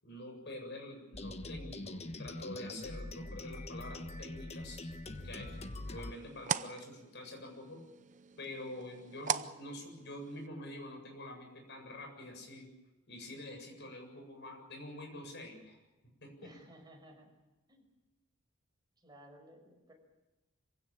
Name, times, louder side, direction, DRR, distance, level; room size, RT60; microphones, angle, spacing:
voice 1, 0.0-4.8 5.2-5.5 5.9-7.8 8.4-12.7 13.1-15.8 16.2-16.3, left 1 dB, 60° left, 3 dB, 7.8 m, -46 dB
sound 1, 1.1-6.1, left 2 dB, 35° left, 1.3 m, -43 dB
sound 2, 5.1-10.5, right 7 dB, 40° right, 0.7 m, -41 dB
voice 2, 16.4-17.4 17.7-17.9 19.0-19.9, right 1 dB, 20° right, 1 dB, 6.2 m, -57 dB
26.0 x 16.5 x 8.9 m, 1.1 s
head